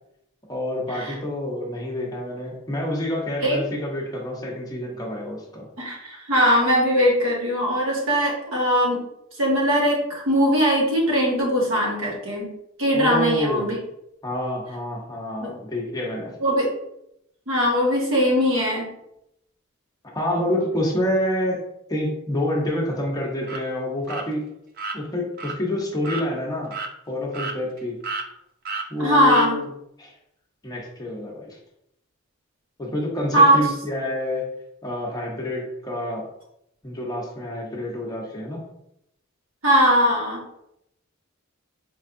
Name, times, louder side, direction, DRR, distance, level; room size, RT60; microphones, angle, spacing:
voice 1, 0.5-5.7 12.9-13.7 14.2-16.4 20.1-21.6 21.9-24.5 24.9-26.7 27.1-28.0 28.9-29.7 30.0-30.1 30.6-31.6 32.8-34.5 34.8-36.3 36.8-38.6, left 1 dB, 20° left, -2 dB, 0.7 m, -27 dB
voice 2, 5.8-9.0 9.4-12.5 12.8-13.8 15.4-15.5 16.4-16.7 17.5-18.9 29.0-29.6 33.3-33.6 39.6-40.4, equal, 75° right, -3 dB, 1.4 m, -20 dB
sound 1, 23.4-23.6 24.1-24.3 24.8-25.0 25.4-25.6 26.0-26.3 26.7-26.9 27.3-27.8 28.0-28.3 28.6-28.9 29.3-29.5, right 4 dB, 45° right, 0.4 m, -31 dB
4.4 x 3.1 x 2.5 m, 0.79 s
head